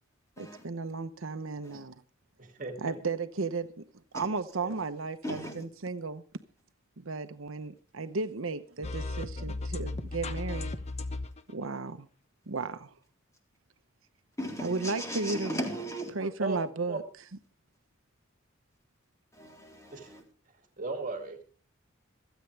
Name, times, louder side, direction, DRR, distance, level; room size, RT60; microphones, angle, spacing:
voice 1, 0.4-1.9 2.8-3.8 4.1-6.2 7.0-10.7 11.5-12.1 12.5-12.9 14.6-15.6 16.1-17.0, right 3 dB, 80° right, 0.9 m, -34 dB
voice 2, 2.4-3.0 4.6-4.7 9.4-9.6 15.3-15.4 16.4-16.6 16.9-17.0 19.9-20.1 20.8-21.4, right 3 dB, 40° right, 2.4 m, -37 dB
voice 3, 5.2-5.6 14.4-16.1 19.3-20.2, equal, 15° left, 3.6 m, -37 dB
sound 1, 8.8-11.5, left 2 dB, 30° left, 0.9 m, -35 dB
26.5 x 9.2 x 3.4 m
head